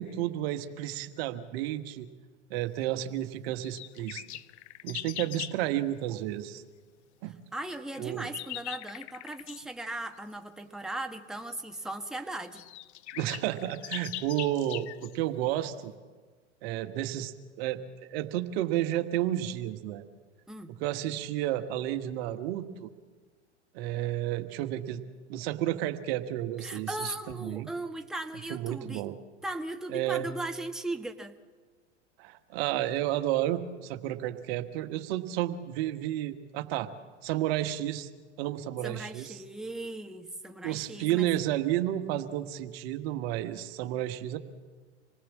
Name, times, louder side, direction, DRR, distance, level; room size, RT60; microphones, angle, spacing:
voice 1, 0.0-2.1 2.5-4.2 4.8-6.6 7.2-7.4 8.0-8.3 13.2-15.9 16.6-20.0 20.7-22.9 23.7-25.0 25.3-27.7 28.5-29.1 29.9-30.3 32.2-36.9 37.2-38.1 38.4-39.4 40.6-44.4, right 13 dB, 55° right, 9 dB, 1.5 m, -31 dB
sound 1, 3.6-5.6 7.7-9.7 11.5-11.6 12.2-12.3 12.4-15.2, left 14 dB, 70° left, 0.9 m, -41 dB
voice 2, 7.5-12.7 20.5-20.7 26.6-29.0 29.4-31.4 38.8-41.3, right 2 dB, ahead, 5 dB, 1.4 m, -38 dB
27.0 x 19.5 x 7.3 m, 1.4 s
hypercardioid pair, 95°, 35 cm